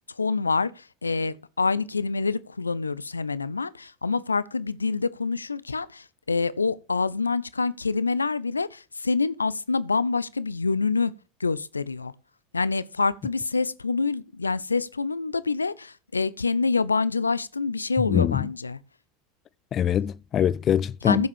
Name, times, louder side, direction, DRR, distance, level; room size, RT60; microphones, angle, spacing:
voice 1, 0.1-11.1 11.4-12.1 12.5-18.8 21.0-21.3, left 4 dB, 85° left, 0.6 m, -26 dB
voice 2, 18.1-18.5 19.7-21.3, left 9 dB, 35° left, 0.5 m, -23 dB
15.0 x 7.3 x 4.5 m
figure-of-eight pair, 80°, 0 cm